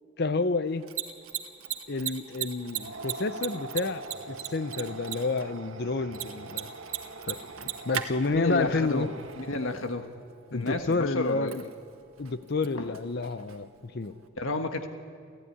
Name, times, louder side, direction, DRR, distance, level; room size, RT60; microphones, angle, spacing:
voice 1, 0.2-0.9 1.9-6.7 7.3-9.1 10.5-11.6 12.2-14.1, left 3 dB, 50° left, 12 dB, 0.6 m, -30 dB
Mechanisms, 0.7-14.3, right 10 dB, 90° right, 1.6 m, -40 dB
sound 1, 2.7-9.9, right 3 dB, 70° right, 1.8 m, -43 dB
voice 2, 8.3-9.1 9.4-10.1 10.5-11.5 12.7-12.9 14.4-14.9, left 2 dB, 70° left, 6 dB, 1.5 m, -31 dB
28.5 x 14.0 x 9.8 m, 2.3 s
head